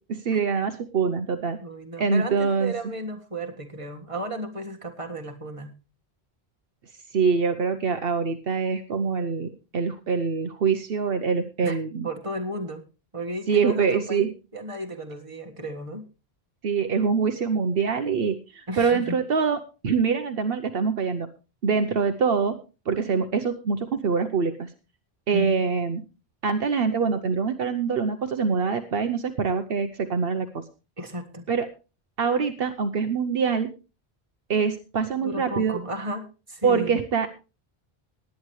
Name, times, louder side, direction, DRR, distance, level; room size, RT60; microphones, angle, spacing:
voice 1, 0.1-1.6 2.0-2.7 7.1-12.1 13.5-14.3 16.6-21.3 21.6-22.6 22.9-24.7 25.3-26.0 26.4-30.6 31.5-31.7 32.2-33.7 34.5-35.8 36.6-37.3, right 5 dB, 70° right, 8 dB, 1.0 m, -24 dB
voice 2, 1.6-5.7 11.6-11.8 12.0-12.8 13.1-14.3 14.5-16.1 18.7-19.2 25.3-25.6 31.0-31.5 35.2-37.0, right 1 dB, 30° right, 4 dB, 1.7 m, -34 dB
19.0 x 9.4 x 3.1 m, 0.31 s
omnidirectional pair, 1.0 m